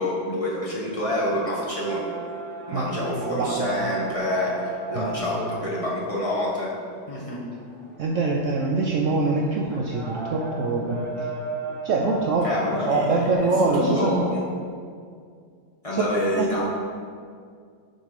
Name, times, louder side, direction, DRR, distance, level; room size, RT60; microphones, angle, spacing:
voice 1, 0.0-2.0 2.7-6.7 7.1-7.4 12.4-14.4 15.8-16.6, left 1 dB, 20° left, -7 dB, 1.2 m, -27 dB
sound 1, 1.0-13.4, right 2 dB, 5° left, 0.5 m, -37 dB
voice 2, 2.7-3.8 4.9-5.4 8.0-11.3 11.8-14.3 15.9-16.6, right 3 dB, 85° right, -1 dB, 0.6 m, -25 dB
6.1 x 4.9 x 5.2 m, 2.2 s
omnidirectional pair, 2.0 m